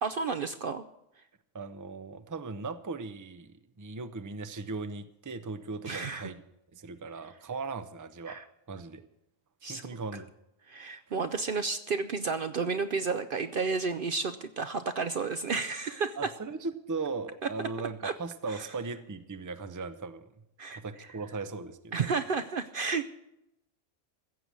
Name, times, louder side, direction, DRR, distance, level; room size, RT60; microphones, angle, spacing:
voice 1, 0.0-0.8 5.9-6.3 8.3-8.4 9.6-9.9 10.7-16.2 18.0-18.1 18.5-18.7 20.6-20.8 21.9-23.1, right 4 dB, 55° right, 11 dB, 0.7 m, -31 dB
voice 2, 1.5-6.4 6.7-8.4 8.7-9.0 9.6-10.3 11.3-11.4 16.2-20.3 20.7-22.1, right 4 dB, 20° right, 10 dB, 0.6 m, -38 dB
15.5 x 7.7 x 8.3 m, 0.84 s
omnidirectional pair, 1.3 m